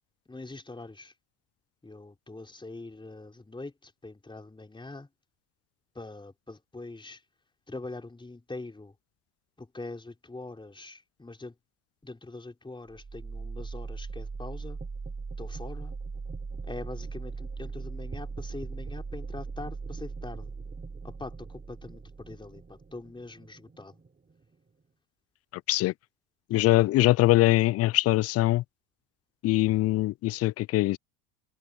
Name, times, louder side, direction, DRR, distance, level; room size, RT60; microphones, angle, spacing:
voice 1, 0.3-1.1 1.8-5.1 5.9-7.2 7.7-8.9 9.6-11.6 12.0-14.8 15.4-15.9 16.6-20.5 21.0-23.9, left 2 dB, 10° left, 4.2 m, -43 dB
sound 1, 12.9-24.8, right 4 dB, 20° right, 3.7 m, -39 dB
voice 2, 26.5-28.6 29.4-31.0, left 17 dB, 35° left, 0.4 m, -22 dB
hypercardioid pair, 80°, 43 cm